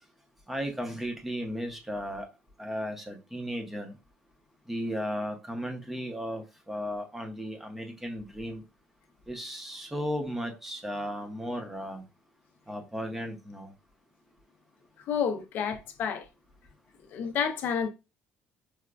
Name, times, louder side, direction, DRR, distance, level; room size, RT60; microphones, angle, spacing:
voice 1, 0.5-2.3 2.6-3.9 4.7-8.6 9.3-12.0 12.7-13.7, equal, 5° right, 0.6 m, -35 dB
voice 2, 15.1-16.3 17.1-17.9, left 7 dB, 50° left, 0.4 m, -29 dB
4.8 x 2.2 x 2.2 m
cardioid pair, 160°, 4 cm